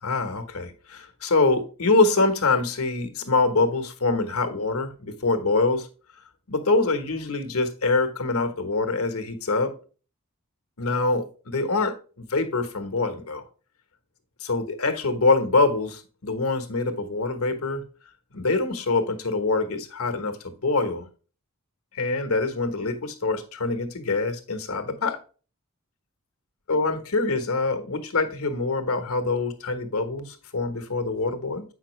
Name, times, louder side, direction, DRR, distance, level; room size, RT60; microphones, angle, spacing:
voice 1, 0.0-5.9 6.5-9.7 10.8-13.4 14.4-17.8 18.3-21.1 21.9-25.2 26.7-31.6, left 3 dB, 75° left, 1.2 m, -25 dB
7.9 x 5.7 x 3.2 m
head